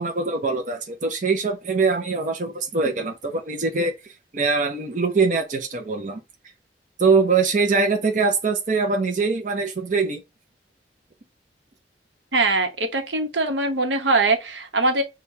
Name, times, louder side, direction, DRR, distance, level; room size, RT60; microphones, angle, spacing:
voice 1, 0.0-3.9 4.3-6.2 7.0-10.2, right 4 dB, 45° right, 0.6 m, -22 dB
voice 2, 12.3-15.0, right 2 dB, 85° right, 1.0 m, -22 dB
6.3 x 2.3 x 2.7 m
head